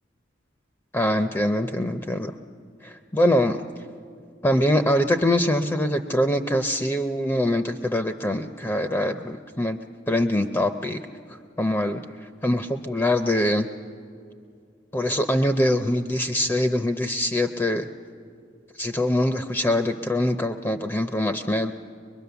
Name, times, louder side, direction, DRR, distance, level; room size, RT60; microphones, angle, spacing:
voice 1, 0.9-2.3 2.8-3.6 4.4-9.8 10.1-11.0 11.6-12.0 12.4-13.7 14.9-17.9 18.8-21.7, left 1 dB, 15° left, 7 dB, 0.5 m, -23 dB
23.5 x 21.5 x 6.9 m, 2.3 s
head